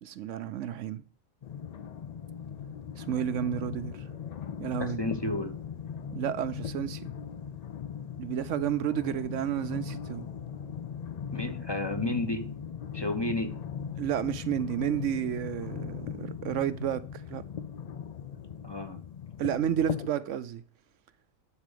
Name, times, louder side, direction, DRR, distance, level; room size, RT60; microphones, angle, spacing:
voice 1, 0.0-1.0 3.0-4.1 4.6-5.0 6.1-7.2 8.2-10.3 14.0-17.4 19.4-20.6, right 10 dB, 75° right, 0.9 m, -31 dB
sound 1, 1.4-20.1, left 7 dB, 65° left, 0.4 m, -39 dB
voice 2, 4.8-5.5 11.3-12.5 12.9-13.6 18.6-19.0, left 2 dB, 20° left, 1.1 m, -32 dB
11.0 x 4.1 x 6.8 m
omnidirectional pair, 1.3 m